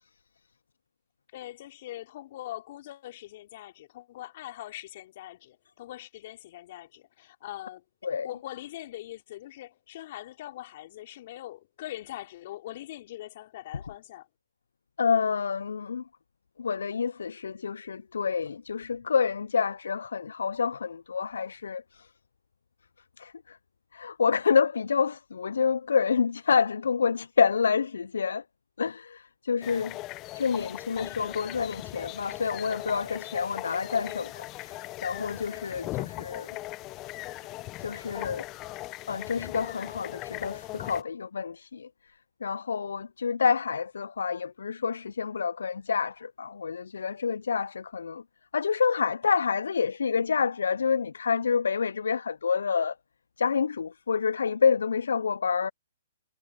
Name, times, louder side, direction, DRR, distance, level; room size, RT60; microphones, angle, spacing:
voice 1, 1.3-7.8 8.2-14.3, left 14 dB, 50° left, 3.2 m, -42 dB
voice 2, 15.0-16.0 16.6-22.1 23.2-23.6 23.9-28.4 28.8-30.0 30.3-36.6 37.8-38.4 39.1-41.9 42.4-48.2 48.5-52.9 53.4-55.7, left 6 dB, 75° left, 0.3 m, -28 dB
sound 1, 29.6-41.0, left 18 dB, 30° left, 0.7 m, -39 dB
hypercardioid pair, 135°, 0 cm